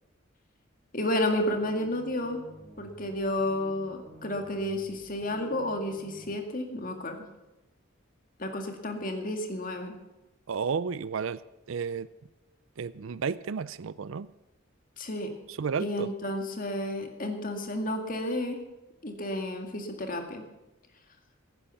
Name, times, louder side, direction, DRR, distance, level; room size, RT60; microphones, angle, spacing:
voice 1, 0.9-2.4 2.8-7.2 8.4-10.0 15.0-15.3 15.8-18.6 19.0-20.4, left 1 dB, 45° left, 4 dB, 2.1 m, -31 dB
sound 1, 1.3-6.4, right 1 dB, 45° right, 5.1 m, -51 dB
voice 2, 10.5-11.4 11.7-12.1 12.8-14.3 15.5-16.1, right 6 dB, 75° right, 18 dB, 0.5 m, -32 dB
15.5 x 10.0 x 7.2 m, 1.0 s
head